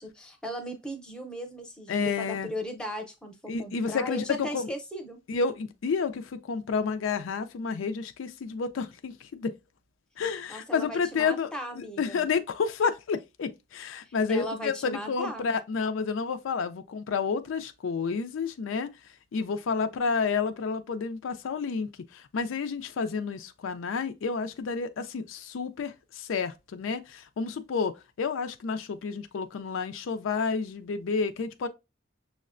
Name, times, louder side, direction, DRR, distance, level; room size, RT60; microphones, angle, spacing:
voice 1, 0.0-5.2 10.5-12.2 14.1-15.5, equal, 5° left, 0.6 m, -37 dB
voice 2, 1.9-2.5 3.5-4.7 5.3-9.5 10.2-18.9 19.3-31.7, left 5 dB, 85° left, 0.4 m, -30 dB
6.3 x 2.1 x 2.4 m
head